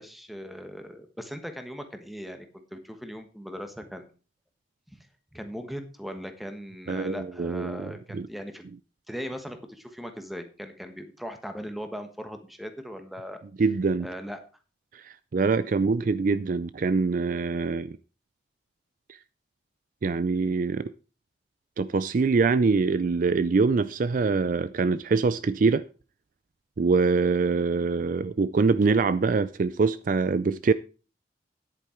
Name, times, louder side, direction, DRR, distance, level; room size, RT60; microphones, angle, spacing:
voice 1, 0.0-4.1 4.9-5.0 5.3-8.6 9.1-13.4 14.0-14.4, equal, ahead, 1.3 m, -39 dB
voice 2, 6.9-8.3 13.6-14.1 14.9-18.0 19.1-19.2 20.0-20.9 21.8-25.8 26.8-30.7, right 4 dB, 50° right, 0.4 m, -24 dB
10.0 x 8.6 x 4.5 m
head